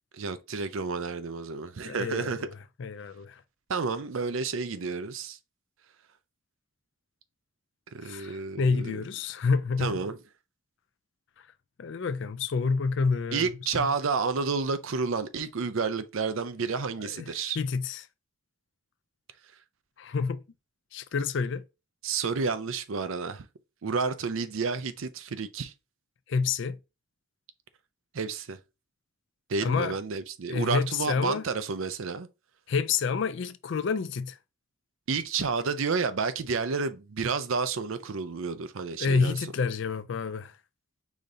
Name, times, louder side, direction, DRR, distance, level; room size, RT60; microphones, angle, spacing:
voice 1, 0.1-2.5 3.7-5.4 7.9-9.0 9.8-10.2 13.3-17.6 22.0-23.5 23.8-25.7 28.1-28.6 29.5-32.3 35.1-39.5, right 4 dB, 70° right, 0.5 m, -30 dB
voice 2, 1.8-2.5 2.8-3.4 8.0-9.9 11.8-13.5 13.7-13.9 17.0-18.0 20.0-20.4 20.9-21.6 26.3-26.8 29.6-29.9 30.5-31.4 32.7-34.4 39.0-40.5, left 5 dB, 55° left, 0.4 m, -28 dB
5.0 x 2.7 x 3.8 m
head